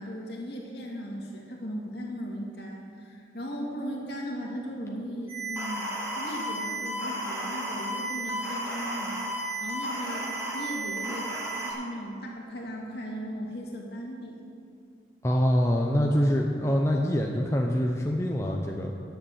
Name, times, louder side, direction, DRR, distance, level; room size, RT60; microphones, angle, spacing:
voice 1, 0.0-9.2 9.6-14.4 16.6-16.7, equal, 60° left, -1 dB, 2.0 m, -37 dB
sound 1, 5.3-11.7, right 1 dB, 15° right, 2.1 m, -33 dB
voice 2, 15.2-18.9, equal, 15° left, 0 dB, 0.6 m, -25 dB
10.5 x 6.9 x 7.1 m, 2.4 s
head